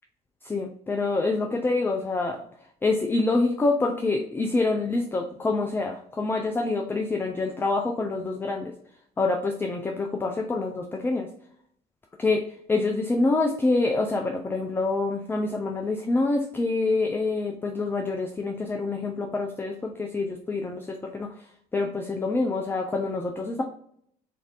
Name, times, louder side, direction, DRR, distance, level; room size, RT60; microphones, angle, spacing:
voice 1, 0.4-2.4 2.8-8.7 9.2-11.3 12.2-12.4 12.7-21.3 21.7-23.6, left 3 dB, 10° left, 3 dB, 0.4 m, -26 dB
3.1 x 2.5 x 2.4 m, 0.67 s
figure-of-eight pair, 55°, 20 cm